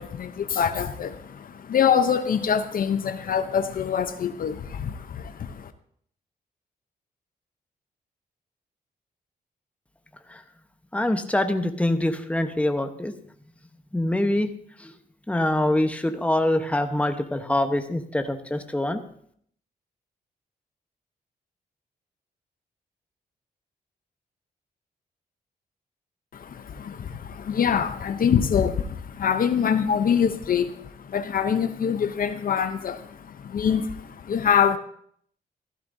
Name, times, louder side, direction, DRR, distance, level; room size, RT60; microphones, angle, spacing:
voice 1, 0.0-5.7 26.3-34.8, left 7 dB, 60° left, 9 dB, 0.8 m, -25 dB
voice 2, 10.9-13.1 13.9-14.5 14.8-14.9 15.3-19.0, left 1 dB, 10° left, 7 dB, 1.1 m, -24 dB
15.0 x 12.0 x 2.7 m, 0.65 s
cardioid pair, 70°, 16 cm